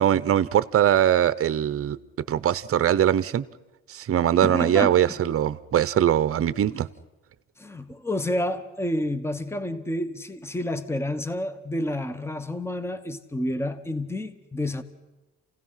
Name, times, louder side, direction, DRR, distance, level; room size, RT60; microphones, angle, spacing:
voice 1, 0.0-2.0 2.3-3.4 3.9-6.9, right 10 dB, 50° right, 0.7 m, -21 dB
voice 2, 4.4-5.0 7.6-14.8, left 1 dB, 10° left, 1.1 m, -29 dB
28.5 x 16.5 x 5.7 m
cardioid pair, 90°, 30 cm